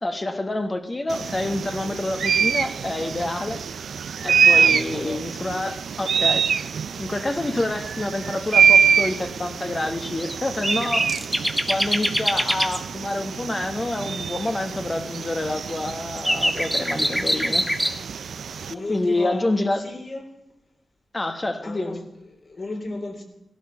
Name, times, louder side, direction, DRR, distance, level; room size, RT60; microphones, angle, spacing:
voice 1, 0.0-3.6 4.2-6.5 7.0-11.1 11.7-17.7 18.9-19.8 21.1-22.0, left 2 dB, 25° left, 7 dB, 1.5 m, -27 dB
sound 1, 1.1-18.7, right 6 dB, 75° right, 0.5 m, -25 dB
voice 2, 4.3-5.2 16.5-17.2 18.7-20.2 21.6-23.2, left 2 dB, 45° left, 1 dB, 3.6 m, -35 dB
sound 2, 10.2-10.4 10.6-12.8 15.8-17.9, equal, ahead, 1.1 m, -24 dB
17.0 x 12.0 x 5.8 m, 0.85 s
cardioid pair, 90°, 0 cm